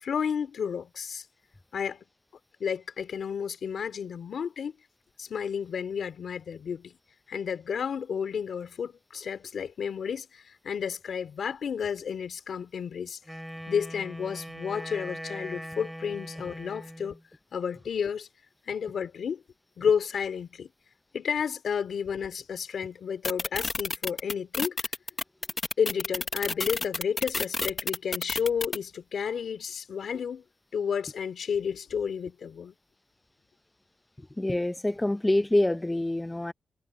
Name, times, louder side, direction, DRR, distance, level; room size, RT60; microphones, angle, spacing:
voice 1, 0.0-1.2 1.7-2.0 2.6-4.7 5.2-7.0 7.3-13.2 13.7-17.2 17.5-18.3 18.7-19.4 19.8-20.7 21.1-24.8 25.8-30.4 30.7-32.7, left 7 dB, 80° left, 3.0 m, -31 dB
Wind instrument woodwind instrument, 13.2-17.2, equal, ahead, 3.3 m, -40 dB
sound 1, 23.2-28.8, left 3 dB, 35° left, 0.9 m, -30 dB
voice 2, 34.4-36.5, left 1 dB, 15° left, 0.5 m, -26 dB
cardioid pair, 80°, 0 cm